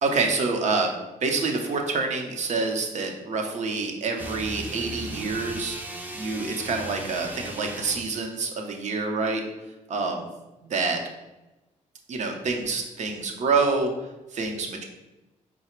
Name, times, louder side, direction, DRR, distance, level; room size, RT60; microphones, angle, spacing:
voice 1, 0.0-0.9 1.2-9.4 9.9-10.3 10.7-11.0 12.1-13.9 14.3-14.8, right 4 dB, 60° right, 3 dB, 0.7 m, -27 dB
sound 1, 4.1-8.1, right 1 dB, 15° right, 0.5 m, -37 dB
4.8 x 2.1 x 4.4 m, 1.0 s
cardioid pair, 95°, 13 cm